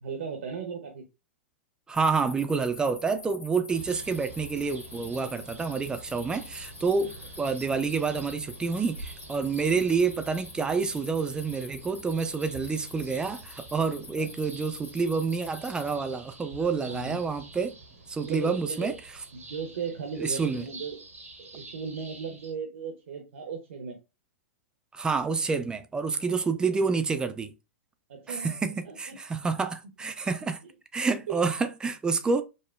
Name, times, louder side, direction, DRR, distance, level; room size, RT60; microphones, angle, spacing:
voice 1, 0.0-1.0 14.2-14.3 16.6-17.2 18.2-19.0 19.3-21.0 21.4-24.0 28.1-28.6 28.8-29.2 30.6-30.7 31.3-31.4, right 6 dB, 60° right, 0.6 m, -37 dB
sound 1, 1.9-16.0, left 4 dB, 20° left, 0.7 m, -47 dB
voice 2, 1.9-17.7 18.1-18.9 20.2-20.7 24.9-27.5 28.3-30.6 30.9-32.4, right 4 dB, 10° right, 0.3 m, -28 dB
sound 2, 3.7-22.5, right 2 dB, 85° right, 0.9 m, -47 dB
5.0 x 2.1 x 2.3 m
figure-of-eight pair, 105°, 7 cm